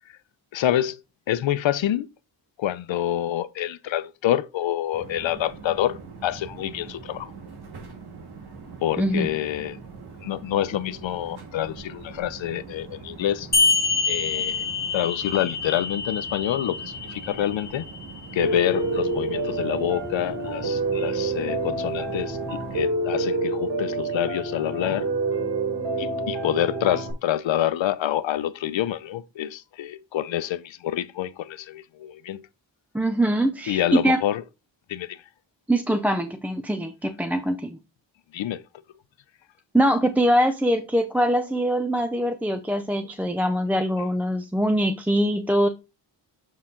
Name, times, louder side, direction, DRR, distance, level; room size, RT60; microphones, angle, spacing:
voice 1, 0.5-2.1 2.6-7.3 8.8-9.8 10.2-13.5 14.1-14.6 14.9-17.9 18.3-25.1 26.0-32.5 33.7-34.4 34.9-35.2 38.3-38.6, left 12 dB, 80° left, 0.6 m, -27 dB
sound 1, 4.9-22.9, right 4 dB, 55° right, 2.0 m, -42 dB
voice 2, 9.0-9.3 32.9-34.2 35.7-37.8 39.7-45.7, right 1 dB, 5° right, 0.3 m, -23 dB
sound 2, 13.5-18.5, left 4 dB, 20° left, 1.5 m, -26 dB
Piano, 18.4-27.1, right 2 dB, 75° right, 3.3 m, -27 dB
7.0 x 4.6 x 3.7 m
wide cardioid pair, 150°, 45 cm